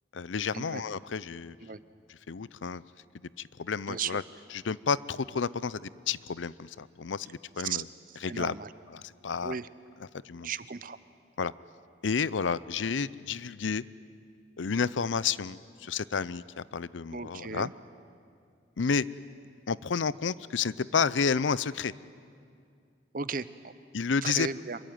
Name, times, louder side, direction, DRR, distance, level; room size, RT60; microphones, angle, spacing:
voice 1, 0.1-1.6 2.3-2.8 3.4-4.2 4.5-7.8 8.2-8.6 8.9-9.6 10.2-10.5 11.4-11.5 12.0-13.8 14.6-17.7 18.8-19.0 19.7-21.9 23.9-24.5, left 5 dB, 90° left, 18 dB, 0.6 m, -30 dB
voice 2, 3.9-4.2 7.6-8.7 9.4-9.7 10.4-11.0 17.1-17.7 23.1-23.7 24.2-24.8, right 6 dB, 50° right, 15 dB, 0.8 m, -36 dB
26.0 x 23.0 x 9.4 m, 2.3 s
head